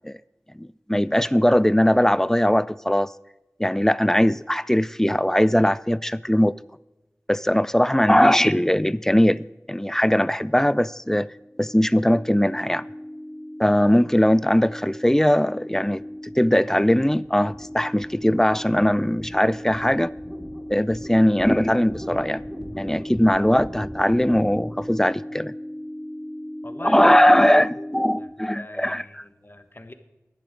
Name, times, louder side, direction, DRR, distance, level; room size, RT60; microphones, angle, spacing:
voice 1, 0.6-3.1 3.6-6.5 7.3-11.3 11.6-12.8 13.6-16.0 16.4-20.1 20.7-22.4 22.8-25.5 26.8-29.0, equal, 10° left, 0.4 m, -20 dB
sound 1, 11.4-28.2, equal, 15° right, 4.3 m, -37 dB
voice 2, 26.6-27.3 27.7-27.9 28.2-28.3 28.5-29.9, left 1 dB, 40° left, 1.2 m, -41 dB
11.5 x 10.5 x 5.0 m
wide cardioid pair, 45°, 5 cm